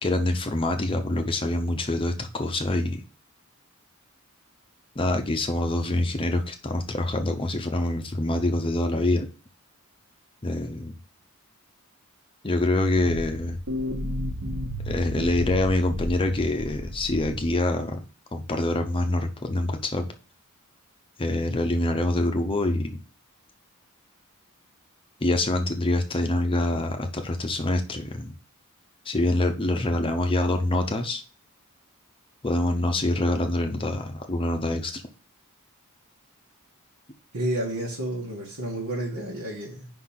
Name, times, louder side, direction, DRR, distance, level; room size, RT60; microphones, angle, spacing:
voice 1, 0.0-3.0 5.0-9.3 10.4-10.9 12.4-13.6 14.9-18.0 18.3-20.1 21.2-23.0 25.2-28.3 29.1-31.2 32.4-35.0, left 1 dB, 25° left, 0.6 m, -25 dB
sound 1, 13.0-17.6, left 1 dB, 60° right, 1.3 m, -33 dB
voice 2, 37.3-39.9, right 1 dB, 90° right, 1.7 m, -30 dB
5.3 x 3.9 x 5.7 m
head